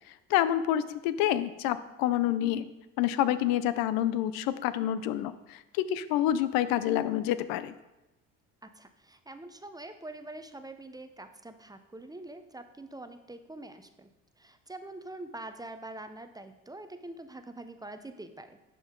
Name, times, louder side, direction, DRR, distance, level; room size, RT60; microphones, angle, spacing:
voice 1, 0.3-2.7 3.0-5.3 5.7-7.7, left 12 dB, 75° left, 14 dB, 0.6 m, -27 dB
voice 2, 8.6-14.1 14.4-18.6, right 2 dB, 10° right, 8 dB, 0.7 m, -45 dB
10.5 x 5.3 x 3.8 m, 0.98 s
supercardioid pair, 75°, 36 cm